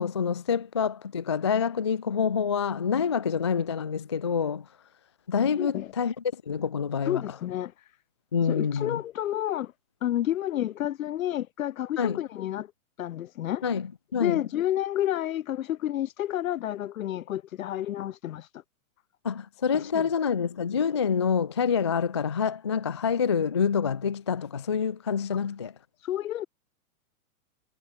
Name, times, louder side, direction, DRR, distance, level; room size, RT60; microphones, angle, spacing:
voice 1, 0.0-4.7 5.3-7.2 8.3-9.0 12.0-12.2 13.6-14.4 19.2-25.7, left 6 dB, 20° left, 0.3 m, -27 dB
voice 2, 5.6-5.9 7.1-7.7 8.5-9.7 10.0-12.7 13.0-13.6 14.2-18.6 19.7-20.1 26.0-26.5, left 12 dB, 70° left, 2.1 m, -30 dB
supercardioid pair, 165°, 44 cm